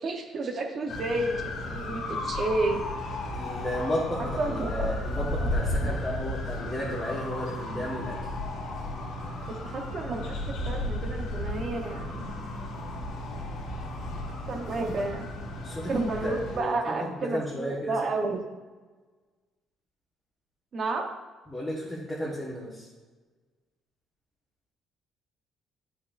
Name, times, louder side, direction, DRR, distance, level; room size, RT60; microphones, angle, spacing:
voice 1, 0.0-1.4 1.7-2.8 4.2-4.9 5.4-5.9 9.5-12.4 14.5-15.3 15.9-18.4 20.7-21.1, right 2 dB, 40° right, 3 dB, 0.9 m, -31 dB
sound 1, 0.9-16.6, left 1 dB, 75° left, 1.7 m, -34 dB
voice 2, 3.3-8.2 15.6-15.9 16.2-16.7 17.3-17.9 21.5-22.7, equal, 10° left, -7 dB, 1.3 m, -33 dB
10.5 x 5.6 x 2.5 m, 1.3 s
cardioid pair, 145°, 0 cm